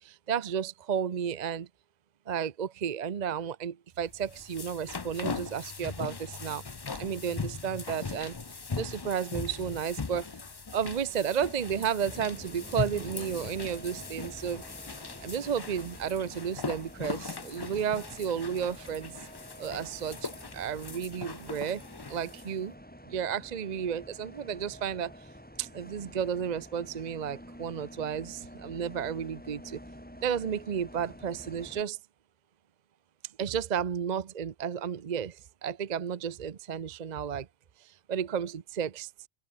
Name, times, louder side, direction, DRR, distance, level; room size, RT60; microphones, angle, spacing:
voice 1, 0.0-1.7 2.3-6.6 6.9-8.4 8.8-10.3 10.7-14.6 15.2-19.1 19.6-21.8 22.1-22.7 23.1-25.1 25.6-29.8 30.2-32.0 33.4-37.5 37.8-39.1, right 8 dB, 45° right, 0.8 m, -32 dB
sound 1, 4.1-22.5, left 4 dB, 25° left, 0.6 m, -40 dB
Bus, 12.0-31.8, equal, 10° left, 7.6 m, -49 dB
open air
omnidirectional pair, 1.1 m